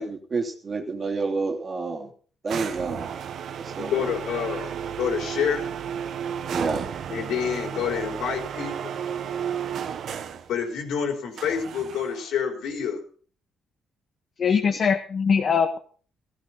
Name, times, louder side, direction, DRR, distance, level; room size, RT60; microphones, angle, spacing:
voice 1, 0.0-2.1 2.4-3.1 3.6-4.1 6.5-6.9 14.5-14.8, right 4 dB, 40° right, 2 dB, 2.8 m, -29 dB
sound 1, 2.5-10.5 11.4-12.3, right 8 dB, 65° right, 1.3 m, -33 dB
voice 2, 3.8-5.7 7.1-8.9 10.5-13.0, left 7 dB, 80° left, 2 dB, 4.9 m, -28 dB
voice 3, 14.4-15.8, left 6 dB, 50° left, 4 dB, 1.7 m, -22 dB
15.5 x 14.0 x 4.2 m, 0.42 s
cardioid pair, 90°, 0 cm